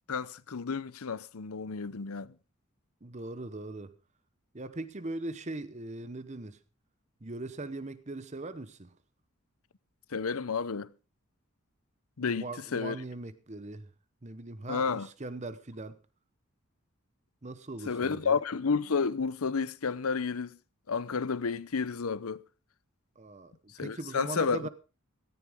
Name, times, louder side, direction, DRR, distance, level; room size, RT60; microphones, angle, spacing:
voice 1, 0.1-2.3 10.1-10.9 12.2-13.0 14.7-15.1 17.9-20.6 20.9-22.4 23.8-24.7, left 5 dB, 85° left, 0.7 m, -31 dB
voice 2, 3.0-3.9 4.5-6.6 7.2-8.9 12.2-13.9 14.2-16.0 17.4-18.4 23.2-24.7, right 2 dB, 30° right, 0.9 m, -40 dB
17.0 x 14.0 x 3.6 m
head